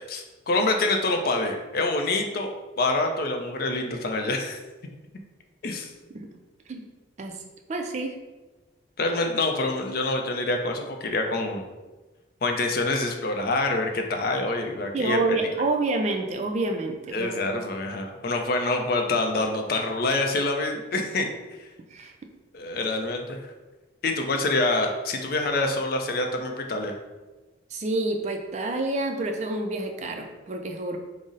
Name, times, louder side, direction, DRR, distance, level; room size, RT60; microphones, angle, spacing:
voice 1, 0.0-4.6 5.6-5.9 9.0-11.7 12.4-15.4 17.1-21.3 21.6-21.7 22.5-23.5 24.0-26.9, left 2 dB, 50° left, 3 dB, 0.4 m, -26 dB
voice 2, 7.7-8.1 14.9-17.6 21.9-22.1 27.7-31.0, right 2 dB, 35° right, 4 dB, 0.3 m, -28 dB
3.7 x 2.0 x 3.9 m, 1.2 s
head